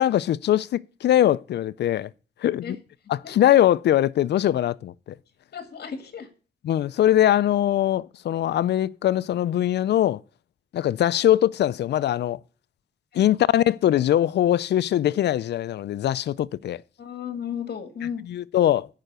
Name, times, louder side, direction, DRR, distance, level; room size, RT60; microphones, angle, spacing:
voice 1, 0.0-2.1 2.4-2.8 3.1-5.2 6.6-10.2 10.7-12.4 13.1-16.8 18.3-18.9, left 12 dB, 90° left, 0.4 m, -22 dB
voice 2, 5.5-6.3 13.1-13.2 17.0-18.2, left 8 dB, 70° left, 1.8 m, -34 dB
8.9 x 5.6 x 6.6 m
wide cardioid pair, 120°, 17 cm